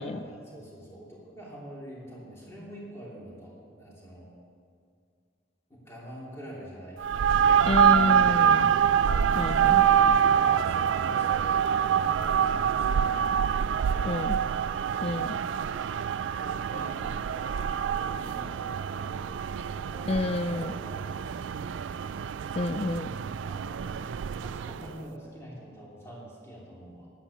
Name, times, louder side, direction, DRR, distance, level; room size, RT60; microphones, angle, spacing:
voice 1, 0.0-4.3 5.7-7.5 9.4-13.2 13.7-14.4 16.3-19.4 19.9-22.0 23.4-27.1, equal, 15° left, -6 dB, 2.9 m, -46 dB
sound 1, 7.0-24.9, right 8 dB, 65° right, 0.3 m, -25 dB
voice 2, 7.6-8.7 9.3-9.8 14.1-14.3 15.0-15.3 20.1-20.7 22.6-23.1, left 2 dB, 30° left, 12 dB, 0.4 m, -29 dB
11.0 x 10.0 x 7.0 m, 2.3 s
head